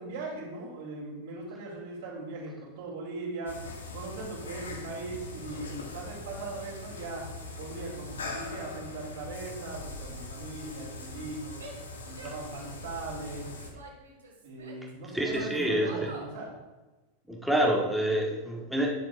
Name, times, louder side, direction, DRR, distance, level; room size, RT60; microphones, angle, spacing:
voice 1, 0.0-3.6 3.9-7.2 7.6-13.5 14.4-16.5, right 3 dB, 55° right, -5 dB, 2.7 m, -39 dB
sound 1, 3.5-13.7, left 2 dB, 70° left, 1.1 m, -41 dB
Female speech woman speaking / Yell, 11.6-12.9 13.4-14.9 15.3-16.4, right 2 dB, 70° right, 2.2 m, -47 dB
voice 2, 15.1-16.1 17.3-18.9, right 1 dB, ahead, -2 dB, 1.5 m, -27 dB
11.0 x 6.8 x 2.6 m, 1.2 s
figure-of-eight pair, 90°, 0 cm